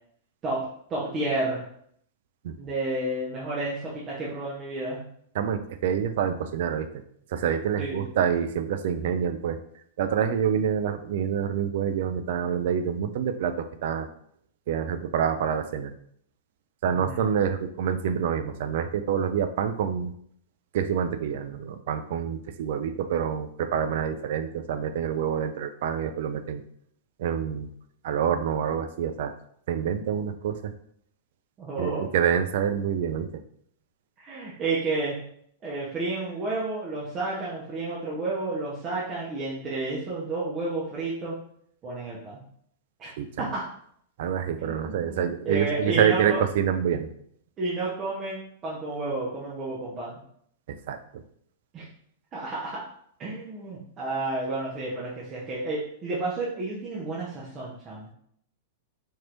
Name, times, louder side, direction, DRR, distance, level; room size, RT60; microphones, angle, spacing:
voice 1, 0.9-1.6 2.6-5.0 7.8-8.2 16.9-17.3 31.6-32.1 34.2-35.2 35.6-41.3 41.8-42.4 43.0-43.1 43.4-43.6 44.6-46.4 47.6-50.2 51.7-51.8 52.3-52.8 53.2-58.1, right 2 dB, 30° right, -6 dB, 0.9 m, -31 dB
voice 2, 5.3-6.9 7.3-9.6 10.0-14.1 14.7-15.9 16.8-20.1 20.7-26.6 27.2-27.7 28.0-29.3 29.7-30.7 31.8-33.4 43.0-43.4 44.2-47.1 50.7-51.2, right 8 dB, 55° right, 9 dB, 0.4 m, -27 dB
4.5 x 3.0 x 2.5 m, 0.66 s
figure-of-eight pair, 95°, 0 cm